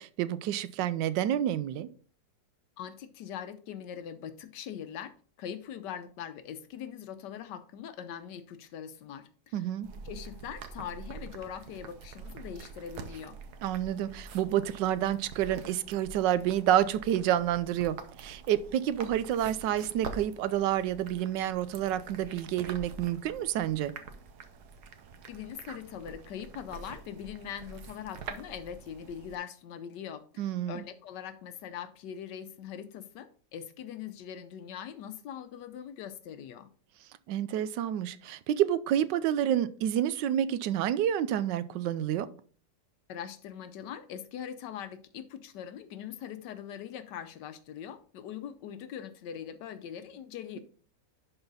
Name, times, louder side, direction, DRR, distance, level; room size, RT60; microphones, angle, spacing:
voice 1, 0.0-1.9 9.5-9.9 13.6-23.9 30.4-30.8 37.3-42.3, right 11 dB, 85° right, 1.2 m, -29 dB
voice 2, 2.8-9.7 9.9-13.4 25.3-36.7 43.1-50.6, left 9 dB, 80° left, 1.3 m, -42 dB
sound 1, 9.8-29.4, right 5 dB, 70° right, 1.3 m, -46 dB
11.0 x 4.0 x 4.0 m
omnidirectional pair, 1.9 m